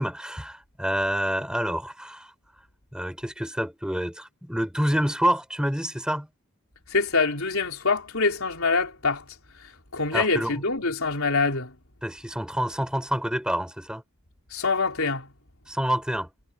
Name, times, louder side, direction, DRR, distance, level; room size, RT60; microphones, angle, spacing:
voice 1, 0.0-2.3 2.9-6.3 10.1-10.6 12.0-14.0 15.7-16.3, equal, 5° right, 3.8 m, -27 dB
voice 2, 6.9-9.2 9.9-11.7 14.5-15.3, left 4 dB, 80° left, 3.9 m, -25 dB
head